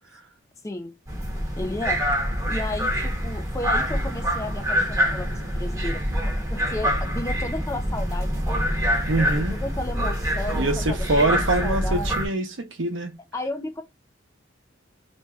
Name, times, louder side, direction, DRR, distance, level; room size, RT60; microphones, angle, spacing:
sound 1, 1.1-12.3, equal, 15° right, 0.9 m, -25 dB
voice 1, 1.6-2.0 2.5-8.7 9.5-12.1 13.3-13.8, left 2 dB, 15° left, 0.4 m, -33 dB
voice 2, 9.1-9.6 10.5-13.1, right 2 dB, 70° right, 0.8 m, -24 dB
3.2 x 2.6 x 2.3 m
head